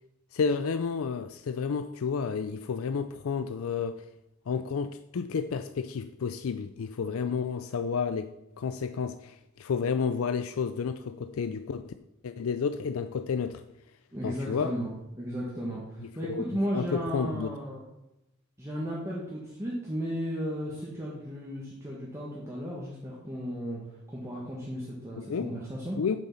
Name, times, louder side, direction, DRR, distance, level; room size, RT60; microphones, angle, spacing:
voice 1, 0.3-4.0 4.5-8.3 8.6-11.9 12.2-13.6 14.2-14.8 16.2-16.4 16.7-17.5 25.2-25.5 26.0-26.2, left 5 dB, 85° left, 0.4 m, -31 dB
voice 2, 14.1-17.9 18.6-26.0, equal, 15° right, 1.6 m, -35 dB
7.7 x 7.3 x 5.5 m
head